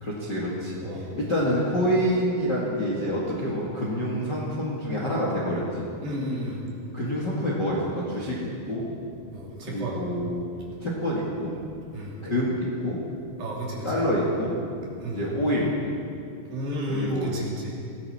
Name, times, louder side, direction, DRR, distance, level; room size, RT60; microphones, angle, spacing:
voice 1, 0.0-0.8 1.2-5.8 6.9-8.8 9.7-10.4 10.8-11.5 12.2-13.0 13.8-14.6 15.1-15.8 16.9-17.4, equal, 40° left, -4 dB, 1.7 m, -27 dB
voice 2, 0.8-1.1 6.0-6.6 9.3-10.0 11.9-12.2 13.4-14.0 15.0-15.3 16.5-17.7, equal, 60° right, -4 dB, 4.3 m, -32 dB
20.5 x 16.5 x 4.3 m, 2.5 s
omnidirectional pair, 4.8 m